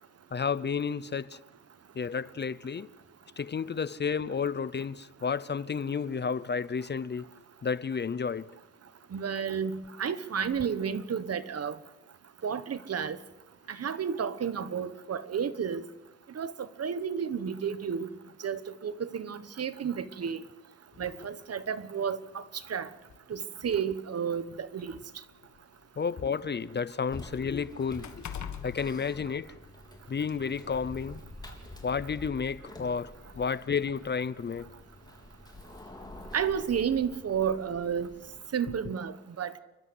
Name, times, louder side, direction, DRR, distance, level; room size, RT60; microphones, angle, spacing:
voice 1, 0.3-1.4 1.9-2.9 3.4-7.3 7.6-8.5 26.0-28.3 28.6-29.5 30.1-31.2 31.8-34.7, left 6 dB, 35° left, 0.6 m, -31 dB
voice 2, 9.1-11.8 12.4-13.2 13.7-15.8 16.3-16.5 16.8-18.1 18.4-20.4 21.0-22.4 22.7-22.9 23.3-25.0 36.3-38.1 38.5-39.6, right 7 dB, 55° right, 1.2 m, -31 dB
sound 1, 21.2-21.4 22.4-22.5 23.0-23.1 24.1-26.0 26.4-29.9 30.2-30.4, left 8 dB, 75° left, 1.7 m, -44 dB
sound 2, 27.1-38.5, left 1 dB, 15° left, 3.8 m, -48 dB
29.5 x 12.5 x 7.9 m
cardioid pair, 90°, 29 cm